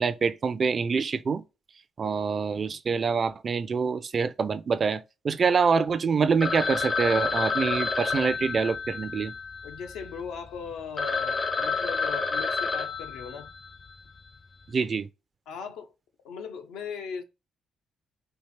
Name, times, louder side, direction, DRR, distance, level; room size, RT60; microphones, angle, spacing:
voice 1, 0.0-1.4 2.0-9.3 14.7-15.1, right 5 dB, 45° right, 0.4 m, -26 dB
Telephone, 6.4-10.2 10.7-10.8 11.0-13.8, left 4 dB, 30° left, 0.5 m, -29 dB
voice 2, 9.6-13.5 15.5-15.9 16.2-17.2, left 6 dB, 90° left, 0.7 m, -38 dB
4.5 x 2.8 x 3.2 m
cardioid pair, 90°, 0 cm